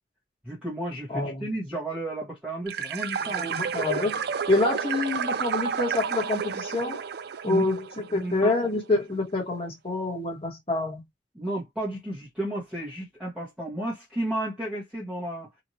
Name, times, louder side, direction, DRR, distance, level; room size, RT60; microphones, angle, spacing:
voice 1, 0.4-3.5 7.5-7.6 8.1-8.7 11.3-15.5, right 1 dB, 5° right, 1.1 m, -32 dB
voice 2, 1.1-1.5 3.2-7.1 7.4-11.0, left 2 dB, 30° left, 1.4 m, -27 dB
sound 1, 2.7-8.4, right 6 dB, 60° right, 0.4 m, -31 dB
3.0 x 2.6 x 2.7 m
head